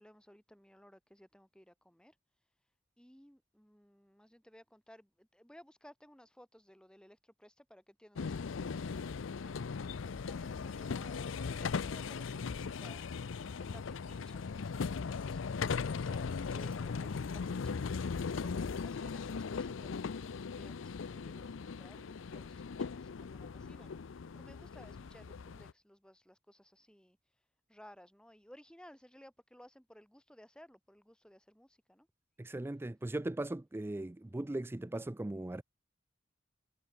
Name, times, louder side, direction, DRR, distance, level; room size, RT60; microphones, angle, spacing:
voice 1, 0.0-2.1 3.0-9.5 10.1-13.0 13.6-27.2 27.7-32.1, equal, 5° left, 4.4 m, -59 dB
sound 1, 8.2-25.7, left 5 dB, 80° left, 0.5 m, -38 dB
voice 2, 32.4-35.6, right 1 dB, 10° right, 0.4 m, -38 dB
head